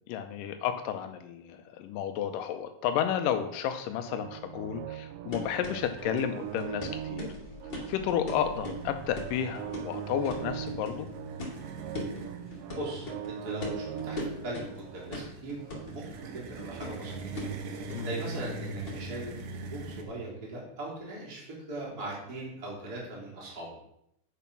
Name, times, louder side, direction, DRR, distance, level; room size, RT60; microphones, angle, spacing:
voice 1, 0.1-7.3 7.9-11.1 17.9-18.1, left 9 dB, 85° left, 7 dB, 2.3 m, -32 dB
sound 1, 4.1-18.1, right 10 dB, 85° right, 2.2 m, -41 dB
sound 2, 5.3-19.1, left 2 dB, 35° left, 2.9 m, -41 dB
sound 3, 8.5-20.0, right 3 dB, 65° right, 1.5 m, -42 dB
voice 2, 12.8-14.2 14.4-15.7 15.9-17.2 18.0-23.7, right 1 dB, 30° right, -4 dB, 3.5 m, -39 dB
8.6 x 7.0 x 5.9 m, 0.78 s
omnidirectional pair, 3.9 m